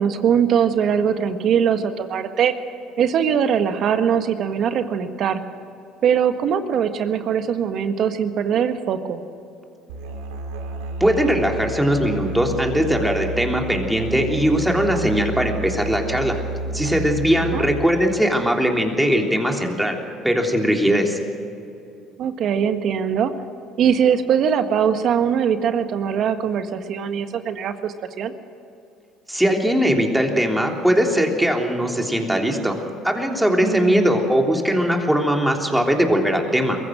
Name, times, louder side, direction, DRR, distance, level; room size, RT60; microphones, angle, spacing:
voice 1, 0.0-2.5 3.0-5.4 6.0-9.2 17.5-17.7 22.2-23.3 23.8-28.3 33.6-34.2, right 8 dB, 60° right, 8 dB, 1.6 m, -21 dB
Musical instrument, 9.9-17.8, right 2 dB, 90° right, 2.2 m, -31 dB
voice 2, 11.0-16.3 16.7-20.0 20.2-21.2 29.3-32.8 33.0-36.8, equal, 5° right, 2 dB, 3.4 m, -20 dB
23.0 x 15.0 x 7.6 m, 2.7 s
supercardioid pair, 80°, 0 cm